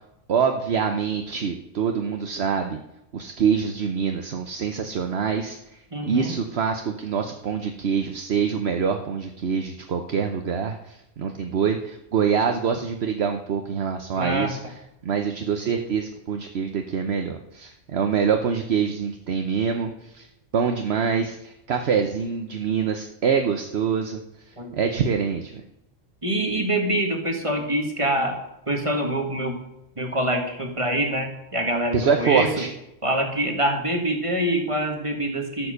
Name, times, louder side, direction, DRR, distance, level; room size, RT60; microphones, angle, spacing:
voice 1, 0.3-2.8 3.1-5.6 6.1-14.6 15.0-20.3 20.5-24.2 24.7-25.6 31.9-32.7, right 6 dB, 60° right, 5 dB, 1.1 m, -25 dB
voice 2, 5.9-6.3 14.2-14.5 24.6-24.7 26.2-28.4 28.7-29.6 30.0-32.5 33.0-35.7, right 1 dB, 25° right, 3 dB, 1.9 m, -25 dB
12.5 x 7.7 x 6.6 m, 0.85 s
omnidirectional pair, 1.2 m